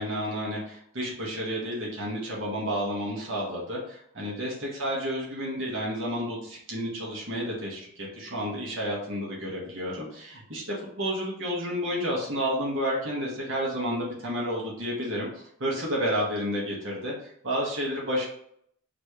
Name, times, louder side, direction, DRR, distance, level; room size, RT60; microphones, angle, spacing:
voice 1, 0.0-18.3, equal, 60° right, -4 dB, 1.5 m, -31 dB
4.1 x 3.3 x 3.2 m, 0.70 s
head